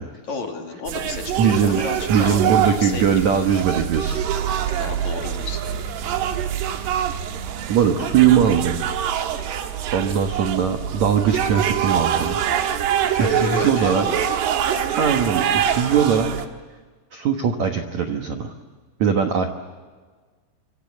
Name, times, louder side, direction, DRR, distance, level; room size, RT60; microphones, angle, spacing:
voice 1, 0.3-2.5 2.8-3.0 3.3-3.4 4.8-5.8 13.1-14.1, left 4 dB, 45° left, 2 dB, 3.4 m, -32 dB
sound 1, 0.9-16.5, right 9 dB, 65° right, 3.3 m, -24 dB
voice 2, 1.4-1.8 2.1-4.5 7.7-8.9 9.5-12.4 12.7-12.9 13.2-14.3 15.0-16.5 17.1-18.5 19.0-19.5, right 7 dB, 85° right, 4 dB, 1.6 m, -21 dB
26.5 x 24.5 x 8.4 m, 1.4 s
omnidirectional pair, 5.4 m